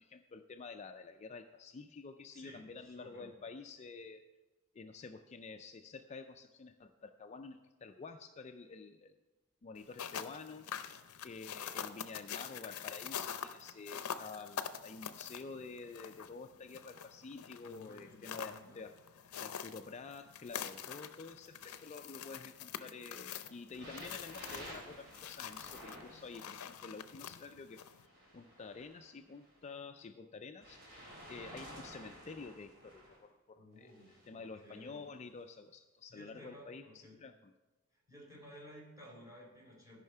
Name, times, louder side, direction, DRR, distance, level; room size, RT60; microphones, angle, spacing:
voice 1, 0.0-4.2 4.7-9.1 9.6-11.0 11.2-33.9 34.3-37.5, left 4 dB, 30° left, 7 dB, 0.4 m, -49 dB
voice 2, 2.3-3.3 17.6-18.8 33.6-35.0 36.1-37.2 38.1-40.0, left 1 dB, 15° right, -4 dB, 3.7 m, -55 dB
sound 1, 9.8-28.0, left 8 dB, 80° left, 0.5 m, -46 dB
sound 2, 23.7-26.9 27.8-29.6 30.6-33.2 33.9-34.3 35.1-35.2, equal, 55° right, 3.1 m, -52 dB
13.0 x 5.6 x 5.5 m, 1.2 s
head